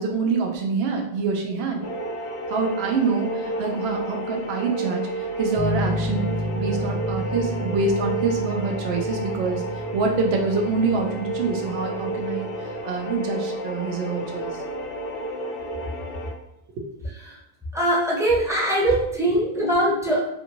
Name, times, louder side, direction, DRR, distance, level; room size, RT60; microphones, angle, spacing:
voice 1, 0.0-1.8 2.5-6.3 6.6-12.5 12.8-14.5, right 4 dB, 80° right, 2 dB, 0.8 m, -26 dB
sound 1, 1.8-16.3, right 2 dB, 85° left, 0.8 m, -31 dB
sound 2, 5.6-12.8, equal, 55° left, 0.8 m, -31 dB
voice 2, 17.7-20.2, right 1 dB, 5° right, -5 dB, 0.6 m, -21 dB
2.6 x 2.6 x 2.8 m, 0.81 s
omnidirectional pair, 1.0 m